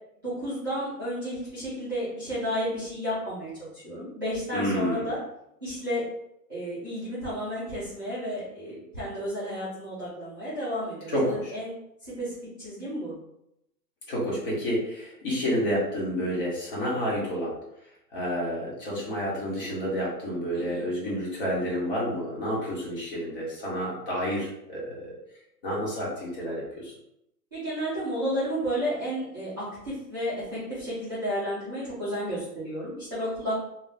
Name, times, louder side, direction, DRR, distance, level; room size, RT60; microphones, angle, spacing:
voice 1, 0.2-5.2 5.6-6.0 6.5-11.7 12.0-13.1 20.5-20.9 27.5-33.6, equal, 15° right, -17 dB, 0.4 m, -32 dB
voice 2, 4.5-5.1 11.1-11.5 14.1-17.5 18.1-25.1 25.6-26.9, equal, 35° left, -5 dB, 1.2 m, -29 dB
3.6 x 2.3 x 2.7 m, 0.81 s
hypercardioid pair, 170°, 49 cm